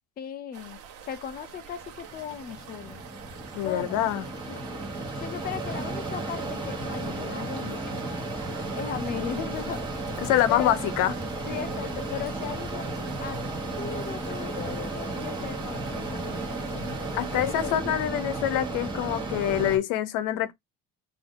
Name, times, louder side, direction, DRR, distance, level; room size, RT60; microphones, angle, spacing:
voice 1, 0.2-3.0 3.6-4.1 4.5-4.6 5.1-8.0 8.7-9.8 10.5-10.8 11.5-12.9 13.2-13.4 13.8-17.0 17.3-17.8, left 8 dB, 30° left, 0.6 m, -37 dB
sound 1, 0.5-17.8, right 7 dB, 50° right, 1.1 m, -47 dB
Mechanisms, 1.8-19.8, right 2 dB, 15° right, 1.4 m, -34 dB
voice 2, 3.5-4.3 10.2-11.1 17.1-20.5, left 11 dB, 90° left, 0.8 m, -25 dB
4.4 x 2.7 x 3.7 m
cardioid pair, 165°, 31 cm